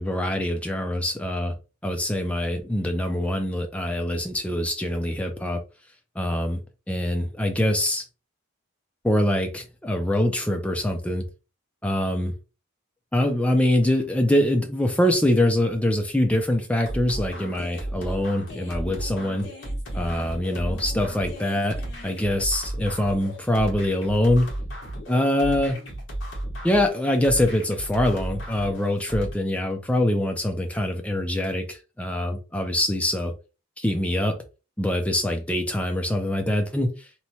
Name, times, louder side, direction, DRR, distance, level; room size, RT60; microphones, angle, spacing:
voice 1, 0.0-1.5 1.8-5.6 6.2-6.6 6.9-8.0 9.0-11.2 11.8-12.3 13.1-19.5 19.9-21.8 22.0-24.5 25.1-25.8 26.6-33.3 33.8-34.4 34.8-36.9, left 1 dB, 5° left, 0.3 m, -24 dB
sound 1, 16.9-29.3, right 1 dB, 60° left, 1.2 m, -34 dB
3.0 x 2.2 x 2.7 m
head